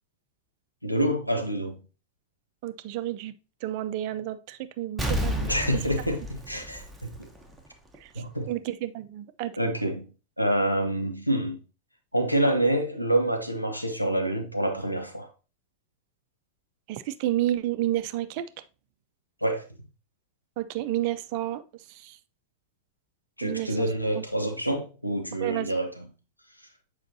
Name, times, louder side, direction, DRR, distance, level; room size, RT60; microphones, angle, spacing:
voice 1, 0.8-1.8 5.4-7.3 8.2-8.5 9.6-10.1 10.4-11.6 12.1-15.3 19.4-19.6 23.4-26.1, right 1 dB, 90° left, 0.9 m, -27 dB
voice 2, 2.6-3.3 3.6-5.5 8.0-9.5 16.9-18.5 20.6-22.2 23.4-23.9 24.1-24.2 25.4-25.7, right 13 dB, 45° right, 0.5 m, -31 dB
Explosion, 5.0-7.6 7.9-8.0, equal, 5° right, 1.0 m, -31 dB
7.1 x 4.8 x 2.7 m
figure-of-eight pair, 90°, 0 cm